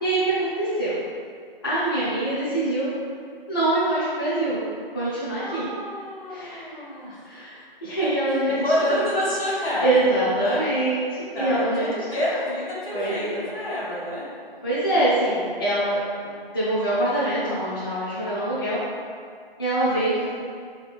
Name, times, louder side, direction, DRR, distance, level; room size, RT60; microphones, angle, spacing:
voice 1, 0.0-1.0 1.6-2.9 3.5-4.6 4.9-5.6 6.3-6.7 7.2-7.5 7.8-8.6 8.8-8.9 9.8-11.9 12.9-13.4 14.6-18.8 19.6-20.3, right 1 dB, 25° left, -11 dB, 0.4 m, -24 dB
voice 2, 5.4-7.3 8.3-10.6 11.3-14.3, left 1 dB, 75° left, -7 dB, 1.3 m, -28 dB
3.1 x 2.7 x 2.5 m, 2.1 s
figure-of-eight pair, 150°, 30 cm